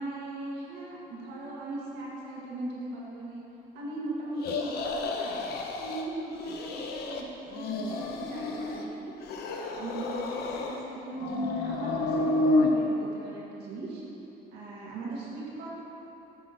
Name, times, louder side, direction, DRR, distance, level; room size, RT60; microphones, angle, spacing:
voice 1, 0.0-3.4 3.7-5.3 5.8-9.1 9.7-14.0 14.5-15.7, right 2 dB, 85° right, -6 dB, 1.9 m, -38 dB
sound 1, 4.4-6.1 6.4-7.2 7.5-8.9 9.2-10.8 11.2-12.7, left 2 dB, 70° left, 0.8 m, -30 dB
7.9 x 4.3 x 6.5 m, 2.9 s
cardioid pair, 110°, 17 cm